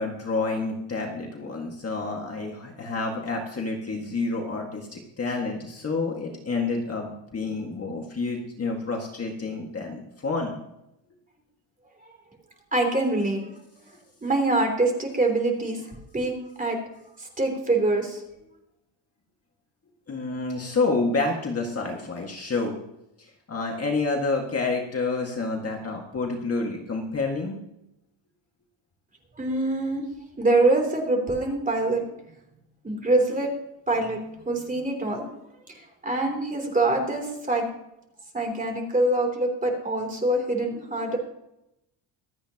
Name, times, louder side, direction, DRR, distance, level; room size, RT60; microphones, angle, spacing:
voice 1, 0.0-10.5 20.1-22.8 23.2-27.6, left 3 dB, 30° left, 0 dB, 1.9 m, -29 dB
voice 2, 12.7-13.4 14.2-15.8 16.1-16.3 16.6-16.8 17.4-18.2 29.4-30.0 30.4-32.0 32.8-33.5 33.9-34.2 34.5-35.3 36.0-37.6 38.3-41.2, right 2 dB, 15° right, 2 dB, 3.2 m, -24 dB
25.5 x 8.7 x 2.9 m, 0.85 s
cardioid pair, 145°, 50 cm